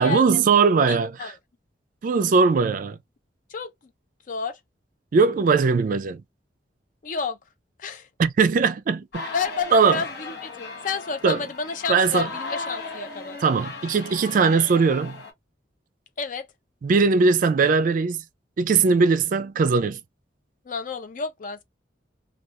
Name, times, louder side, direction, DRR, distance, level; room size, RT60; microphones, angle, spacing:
voice 1, 0.0-1.3 2.0-3.0 5.1-6.2 8.2-9.3 9.7-10.0 11.2-11.4 11.9-12.3 13.4-15.2 16.8-18.2 18.6-20.0, right 4 dB, 45° right, 0.3 m, -20 dB
voice 2, 0.9-1.4 3.5-3.7 4.3-4.6 7.0-7.4 7.8-8.1 9.3-13.4 16.2-16.5 20.6-21.6, left 5 dB, 45° left, 0.5 m, -30 dB
sound 1, 9.1-15.3, left 3 dB, 65° left, 0.9 m, -37 dB
2.3 x 2.3 x 2.8 m
head